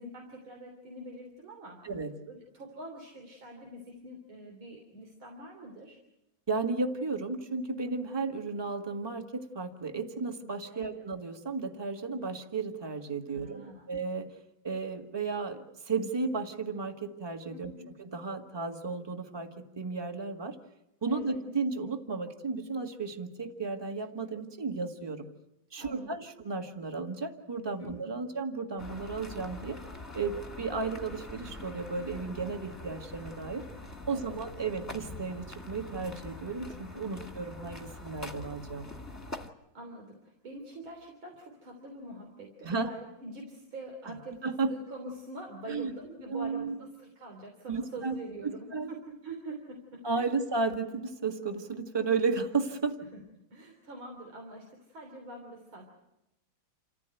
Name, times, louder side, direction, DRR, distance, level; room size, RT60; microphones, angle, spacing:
voice 1, 0.0-1.8 2.3-6.0 10.7-11.0 13.3-13.9 17.5-17.9 21.1-21.4 25.8-26.1 27.8-28.3 34.1-34.4 39.7-50.3 53.1-53.2 53.5-55.8, right 1 dB, 85° right, 1 dB, 4.2 m, -45 dB
voice 2, 6.5-14.3 14.6-17.7 18.0-20.6 21.0-25.3 25.7-29.8 30.1-33.6 34.1-38.9 42.6-42.9 44.4-44.7 45.7-45.9 46.3-46.8 47.7-48.1 48.7-48.9 50.0-53.0, right 4 dB, 15° right, 5 dB, 1.6 m, -34 dB
sound 1, 28.8-39.5, left 2 dB, 10° left, 1.6 m, -44 dB
28.5 x 15.0 x 9.2 m, 0.89 s
omnidirectional pair, 2.2 m